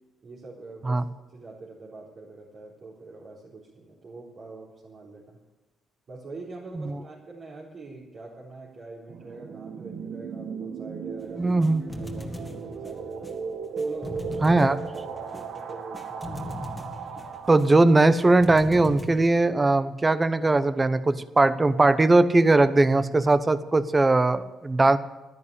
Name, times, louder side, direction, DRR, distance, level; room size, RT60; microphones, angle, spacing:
voice 1, 0.2-1.1 1.3-5.4 6.1-11.6 12.0-13.3 13.7-14.6 14.9-16.6, right 3 dB, 50° right, -6 dB, 4.1 m, -43 dB
sound 1, 9.1-18.6, right 6 dB, 70° right, 1.3 m, -37 dB
sound 2, 11.2-19.3, left 1 dB, 10° left, 1.9 m, -40 dB
voice 2, 11.4-11.8 14.4-14.8 17.5-25.0, right 2 dB, 20° right, 14 dB, 0.9 m, -20 dB
12.5 x 10.5 x 8.3 m, 1.1 s
cardioid pair, 90°, 0 cm